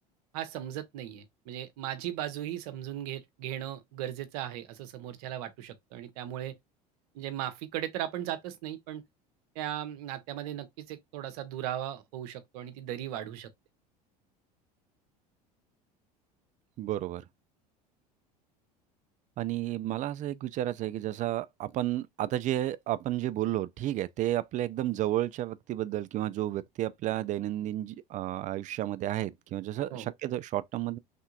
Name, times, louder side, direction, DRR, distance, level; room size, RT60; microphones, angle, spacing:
voice 1, 0.3-6.6 7.1-9.0 9.5-13.5 29.9-30.1, right 12 dB, 70° right, 0.8 m, -37 dB
voice 2, 16.8-17.2 19.4-31.0, right 14 dB, 40° right, 0.4 m, -32 dB
3.4 x 2.8 x 2.4 m
hypercardioid pair, 80°, 20 cm